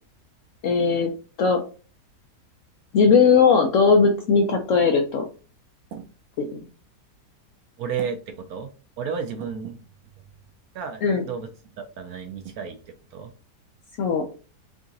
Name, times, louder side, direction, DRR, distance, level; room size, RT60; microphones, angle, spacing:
voice 1, 0.6-1.1 1.4-1.6 2.9-5.3 6.4-6.6 11.0-11.2 14.0-14.2, left 5 dB, 65° left, 4 dB, 0.8 m, -18 dB
voice 2, 7.8-8.7 9.0-9.8 10.7-11.5 11.8-13.3, right 6 dB, 70° right, 6 dB, 1.0 m, -32 dB
3.8 x 3.6 x 2.6 m, 0.36 s
omnidirectional pair, 1.8 m